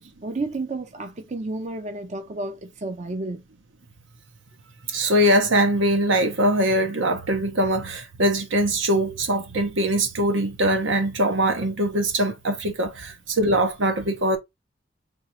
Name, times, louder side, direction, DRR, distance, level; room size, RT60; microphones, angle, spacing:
voice 1, 0.0-3.4, right 2 dB, 35° right, 0.5 m, -31 dB
voice 2, 4.9-14.4, right 1 dB, 80° right, 1.1 m, -22 dB
3.6 x 3.2 x 3.0 m
head